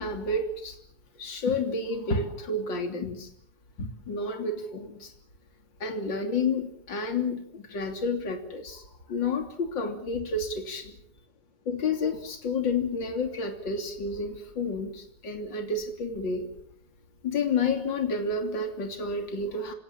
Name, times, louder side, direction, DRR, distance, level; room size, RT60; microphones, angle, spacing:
voice 1, 0.0-0.7 1.2-3.3 3.8-5.1 5.8-8.8 9.1-10.9 11.6-16.5 17.2-19.7, left 3 dB, 30° left, 5 dB, 2.6 m, -30 dB
28.5 x 18.0 x 7.2 m, 0.64 s
omnidirectional pair, 5.9 m